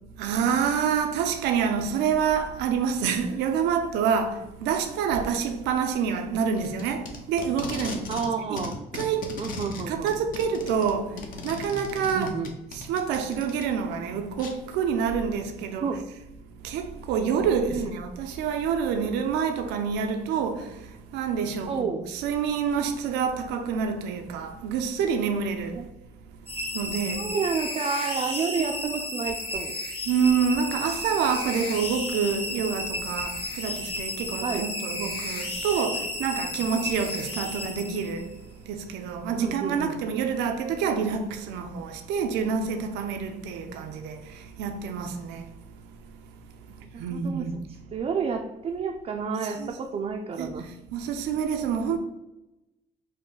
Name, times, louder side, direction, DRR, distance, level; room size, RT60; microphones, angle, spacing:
voice 1, 0.2-8.1 8.5-8.6 8.9-9.3 9.9-11.2 11.4-12.3 12.7-15.9 16.6-20.8 21.1-25.8 26.7-27.2 28.6-29.0 30.1-38.3 38.7-45.5 47.0-47.6 49.4-49.7 50.4-50.6 50.9-52.0, right 6 dB, 90° right, 0.5 m, -27 dB
Packing tape duct tape, 6.6-8.3 8.6-13.6 14.4-14.5, left 3 dB, 55° left, 0.8 m, -37 dB
voice 2, 8.1-8.8 9.4-10.1 12.1-12.5 15.8-16.0 17.7-17.9 21.7-22.1 25.7-25.9 27.2-29.8 34.4-34.6 39.4-40.0 43.6-43.9 46.7-47.5 47.9-50.7, right 5 dB, 35° right, 0.4 m, -30 dB
sound 1, 26.5-38.3, left 1 dB, 35° left, 1.3 m, -33 dB
5.1 x 2.1 x 3.8 m
cardioid pair, 110°, 17 cm